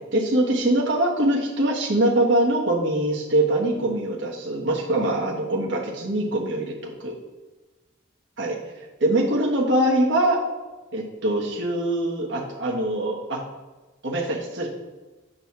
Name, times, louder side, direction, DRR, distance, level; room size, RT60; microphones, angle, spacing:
voice 1, 0.1-7.1 8.4-8.6 9.0-10.4 10.9-13.4 14.0-14.7, right 1 dB, 60° right, -2 dB, 1.4 m, -23 dB
7.7 x 4.0 x 5.9 m, 1.2 s
head